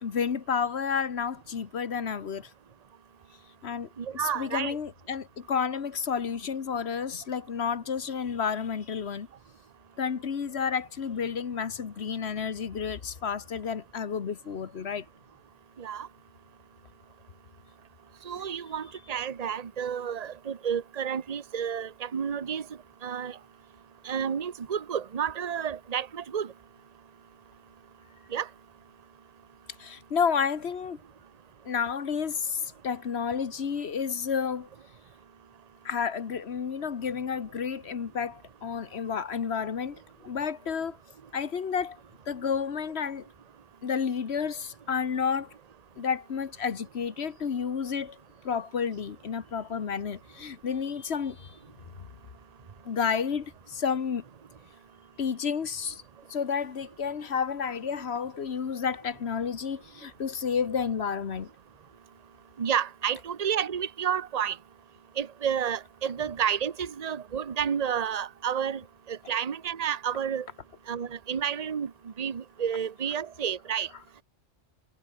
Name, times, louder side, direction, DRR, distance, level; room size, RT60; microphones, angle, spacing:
voice 1, 0.0-2.5 3.6-3.9 4.1-9.3 10.0-15.0 29.8-31.0 31.6-34.7 35.8-40.0 40.2-41.0 41.3-42.0 42.3-43.3 43.8-45.5 46.0-48.2 48.4-51.6 52.0-52.1 52.8-54.2 55.2-56.0 56.3-61.5, left 6 dB, 65° left, 1.4 m, -31 dB
voice 2, 4.0-4.8 15.8-16.1 18.2-22.7 23.0-23.4 24.0-26.5 28.3-28.5 62.6-64.6 65.2-68.8 69.1-70.5 70.9-73.9, right 8 dB, 35° right, 0.9 m, -30 dB
omnidirectional pair, 1.2 m